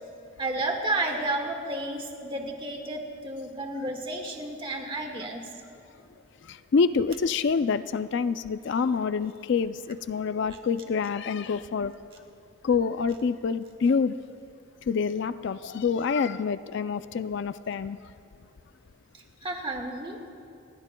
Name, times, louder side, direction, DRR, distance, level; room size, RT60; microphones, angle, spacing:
voice 1, 0.4-5.5 19.1-20.3, right 2 dB, 25° right, 2 dB, 1.6 m, -32 dB
voice 2, 6.5-11.9 12.6-14.2 14.9-18.0, left 5 dB, 55° left, 12 dB, 0.3 m, -27 dB
29.0 x 19.5 x 2.3 m, 2.5 s
head